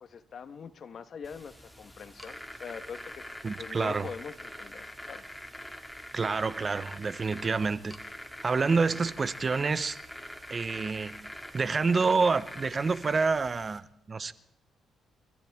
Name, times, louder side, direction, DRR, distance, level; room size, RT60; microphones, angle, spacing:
voice 1, 0.0-3.3 3.6-5.2, left 6 dB, 55° left, 1.3 m, -43 dB
sound 1, 1.2-13.8, equal, 5° left, 2.2 m, -44 dB
voice 2, 3.4-4.1 6.1-8.0 8.4-10.0 10.5-14.3, right 4 dB, 35° right, 0.8 m, -28 dB
29.0 x 13.5 x 3.6 m
cardioid pair, 90°, 0 cm